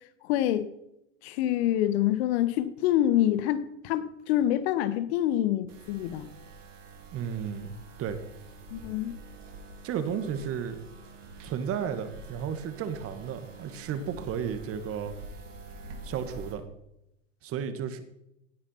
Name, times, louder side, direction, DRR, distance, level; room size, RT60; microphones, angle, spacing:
voice 1, 0.3-0.7 1.2-6.3 8.7-9.2, left 12 dB, 55° left, 1.5 m, -26 dB
sound 1, 5.7-16.5, right 2 dB, 75° right, 4.3 m, -46 dB
voice 2, 7.1-7.7 8.0-8.2 9.8-10.8 11.4-15.1 16.0-16.6 17.4-18.0, right 8 dB, 35° right, 2.1 m, -33 dB
17.5 x 9.8 x 5.9 m
hypercardioid pair, 100°, 38 cm